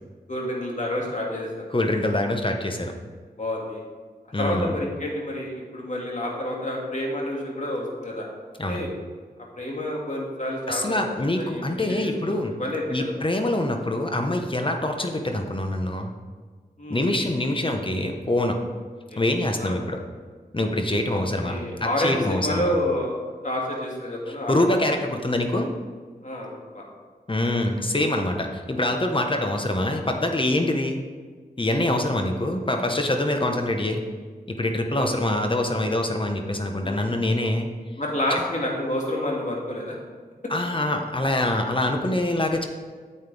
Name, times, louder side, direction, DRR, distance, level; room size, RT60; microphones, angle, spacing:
voice 1, 0.3-1.7 3.4-3.8 4.4-8.3 8.7-8.9 9.5-11.0 11.4-13.0 16.8-17.0 19.1-19.2 19.6-19.8 21.1-23.1 23.4-25.0 26.2-26.8 27.9-28.1 31.8-32.0 35.0-35.4 36.8-37.0 38.0-40.0, left 1 dB, 50° left, -2 dB, 2.4 m, -29 dB
voice 2, 1.7-2.9 4.3-4.7 8.6-8.8 10.7-12.6 12.9-16.1 16.9-18.6 19.2-20.0 20.5-21.5 21.8-22.7 24.3-25.7 27.3-31.0 31.6-34.0 34.5-37.7 38.3-38.4 40.5-42.6, left 1 dB, 30° left, 4 dB, 1.1 m, -25 dB
9.3 x 7.9 x 3.5 m, 1.5 s
cardioid pair, 45°, 16 cm